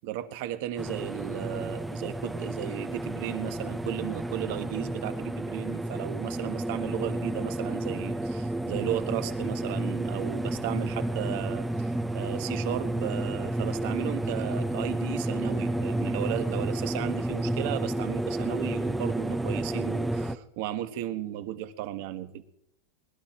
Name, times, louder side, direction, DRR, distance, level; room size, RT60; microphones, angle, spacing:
voice 1, 0.0-22.4, right 12 dB, 55° right, 10 dB, 1.4 m, -35 dB
sound 1, 0.8-20.3, right 1 dB, 5° right, 0.5 m, -31 dB
20.5 x 12.5 x 4.4 m, 0.74 s
supercardioid pair, 165°, 0 cm